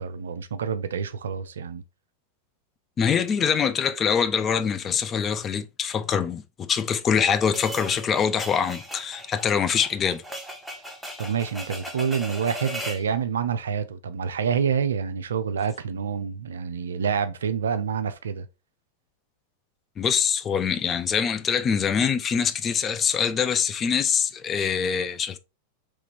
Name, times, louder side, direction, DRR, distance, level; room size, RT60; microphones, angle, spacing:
voice 1, 0.0-1.8 11.2-18.5, right 7 dB, 65° right, 0.4 m, -27 dB
voice 2, 3.0-10.2 20.0-25.4, left 7 dB, 25° left, 0.4 m, -24 dB
sound 1, 7.5-13.1, equal, ahead, 0.8 m, -37 dB
3.6 x 3.2 x 3.2 m
figure-of-eight pair, 90°, 0 cm